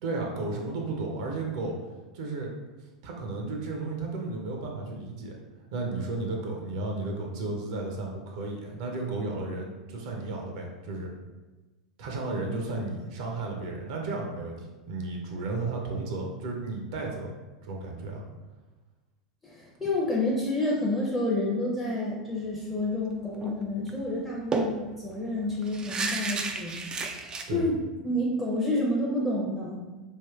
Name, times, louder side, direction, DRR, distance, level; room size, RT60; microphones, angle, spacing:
voice 1, 0.0-1.8 2.1-2.5 3.0-5.4 5.7-11.1 12.0-17.3 17.6-18.2 27.5-27.7, right 3 dB, 55° right, 1 dB, 0.6 m, -33 dB
voice 2, 19.4-26.9 27.5-29.8, left 1 dB, 10° left, -5 dB, 0.7 m, -29 dB
sound 1, 23.4-23.6 23.9-24.0 24.5-27.4, right 3 dB, 20° right, 0.3 m, -32 dB
3.4 x 2.5 x 2.4 m, 1.2 s
figure-of-eight pair, 85°, 4 cm